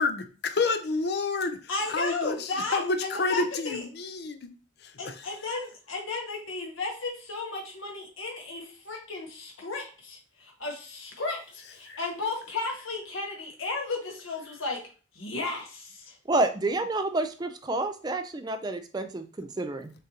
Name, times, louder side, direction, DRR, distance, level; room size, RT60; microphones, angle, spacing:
voice 1, 0.0-1.6 1.9-4.5 4.8-5.1, left 3 dB, 55° left, 9 dB, 0.5 m, -29 dB
voice 2, 1.7-3.8 5.0-14.8 15.1-16.2, left 3 dB, 85° left, 0 dB, 1.0 m, -34 dB
voice 3, 16.3-19.9, right 2 dB, 20° right, 8 dB, 0.3 m, -29 dB
6.4 x 2.5 x 2.8 m, 0.37 s
head